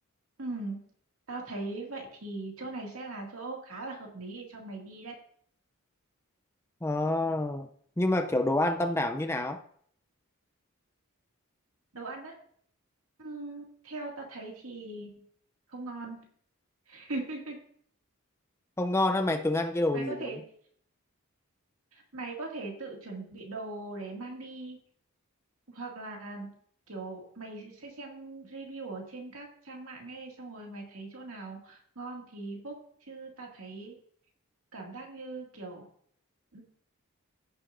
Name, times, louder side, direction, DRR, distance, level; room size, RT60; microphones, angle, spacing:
voice 1, 0.4-0.8 1.3-5.1 11.9-12.3 13.2-15.1 15.7-16.2 16.9-17.6 19.9-20.4 21.9-24.8 25.7-26.5 26.9-32.7 33.1-33.9 34.7-35.9 36.5-36.6, right 2 dB, 75° right, 0 dB, 2.2 m, -40 dB
voice 2, 6.8-7.7 8.0-9.6 18.8-20.3, left 2 dB, 10° left, 6 dB, 0.5 m, -27 dB
15.0 x 7.0 x 2.6 m, 0.62 s
head